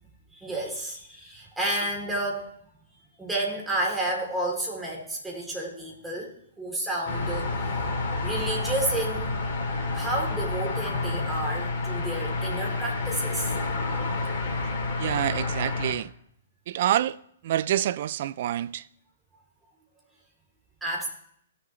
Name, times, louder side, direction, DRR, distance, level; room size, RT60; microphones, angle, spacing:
voice 1, 0.3-2.5 3.2-7.6 8.2-9.4 9.9-13.5 20.8-21.1, right 1 dB, 5° right, 3.1 m, -31 dB
sound 1, 7.1-15.9, left 3 dB, 40° left, 2.9 m, -29 dB
voice 2, 15.0-16.1 16.7-17.2 17.4-18.9, right 12 dB, 50° right, 0.4 m, -27 dB
17.5 x 6.9 x 3.2 m
figure-of-eight pair, 120°, 0 cm